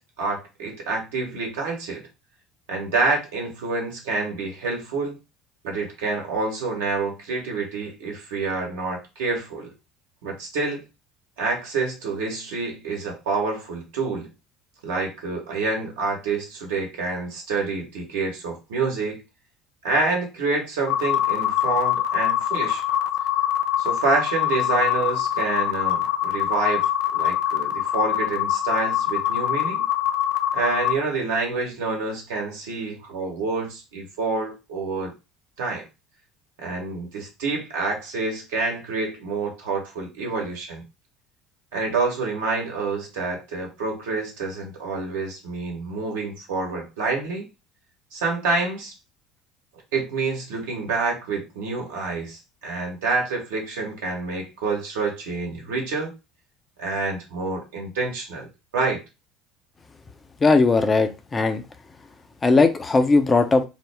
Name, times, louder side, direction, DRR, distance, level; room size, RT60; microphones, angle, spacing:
voice 1, 0.2-2.0 2.7-5.2 5.6-9.7 10.2-10.8 11.4-14.3 14.8-19.2 19.8-22.8 23.8-29.8 30.5-35.1 35.6-35.8 36.6-40.8 41.7-47.5 48.1-48.9 49.9-56.1 56.8-58.5 58.7-59.0, right 3 dB, 75° right, 0 dB, 1.2 m, -27 dB
sound 1, 20.9-30.9, left 11 dB, 65° left, 0.4 m, -24 dB
voice 2, 60.4-61.6 62.4-63.6, left 3 dB, 25° left, 8 dB, 0.6 m, -18 dB
3.7 x 2.1 x 3.3 m, 0.27 s
hypercardioid pair, 65°, 0 cm